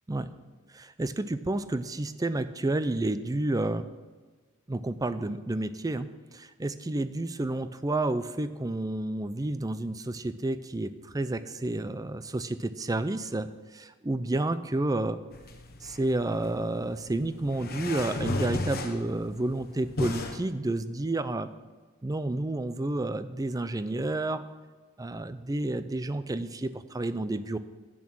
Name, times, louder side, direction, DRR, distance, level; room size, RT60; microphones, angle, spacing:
voice 1, 0.7-3.9 4.7-15.2 15.8-21.5 22.0-24.4 25.0-27.6, right 2 dB, 15° right, 13 dB, 0.4 m, -30 dB
sound 1, 15.3-20.4, left 2 dB, 45° left, 1.0 m, -35 dB
11.0 x 8.6 x 6.2 m, 1.4 s
head